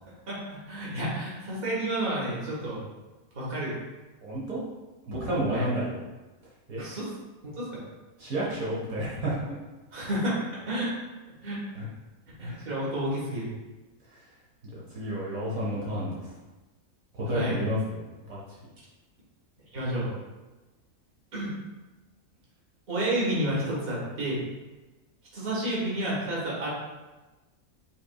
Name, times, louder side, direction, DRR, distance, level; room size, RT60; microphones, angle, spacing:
voice 1, 0.3-2.8 3.3-3.7 5.5-5.7 6.7-7.1 7.4-7.8 9.9-11.0 11.4-11.6 12.4-13.5 17.3-17.6 19.7-20.1 21.3-21.5 22.9-24.4 25.3-26.7, right 1 dB, 40° right, -6 dB, 1.5 m, -30 dB
voice 2, 4.2-4.6 5.1-6.0 6.7-6.8 8.2-9.4 11.8-11.9 12.4-12.7 14.1-14.2 14.9-16.3 17.1-18.0 18.3-18.4, right 1 dB, 70° right, -7 dB, 1.4 m, -30 dB
5.6 x 3.6 x 2.3 m, 1.2 s
omnidirectional pair, 1.6 m